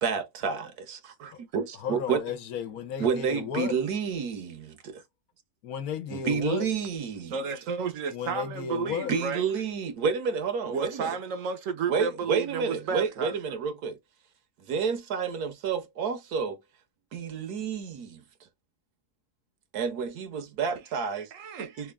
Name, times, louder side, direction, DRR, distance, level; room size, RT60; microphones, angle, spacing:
voice 1, 0.0-2.2 3.0-5.0 6.1-7.4 9.1-11.2 11.9-14.0 14.6-16.6 17.1-18.2 19.7-21.3 21.8-21.9, right 6 dB, 80° right, 1.4 m, -30 dB
voice 2, 1.8-3.8 5.6-6.7 8.1-9.1, left 8 dB, 75° left, 1.1 m, -33 dB
voice 3, 7.3-9.4 10.6-13.6 21.3-21.7, right 6 dB, 65° right, 1.0 m, -32 dB
3.5 x 2.3 x 3.4 m
omnidirectional pair, 1.6 m